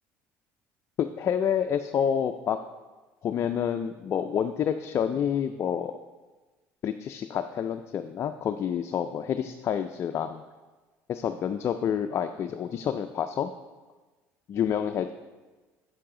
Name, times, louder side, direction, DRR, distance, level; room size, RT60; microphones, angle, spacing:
voice 1, 1.0-2.6 3.2-5.9 6.8-10.4 11.1-13.5 14.5-15.1, left 8 dB, 45° left, 7 dB, 0.4 m, -28 dB
7.8 x 6.7 x 3.7 m, 1.2 s
supercardioid pair, 95°, 7 cm